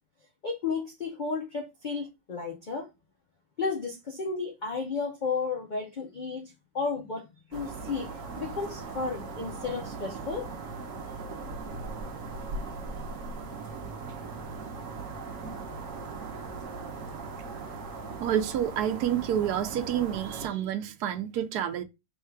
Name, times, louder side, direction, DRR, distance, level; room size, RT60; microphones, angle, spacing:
voice 1, 0.4-2.9 3.6-10.5, left 4 dB, 80° left, 0.4 m, -33 dB
sound 1, 7.5-20.5, right 4 dB, 60° right, 1.1 m, -39 dB
voice 2, 18.2-21.8, right 10 dB, 80° right, 1.2 m, -28 dB
3.6 x 2.3 x 4.4 m
omnidirectional pair, 1.7 m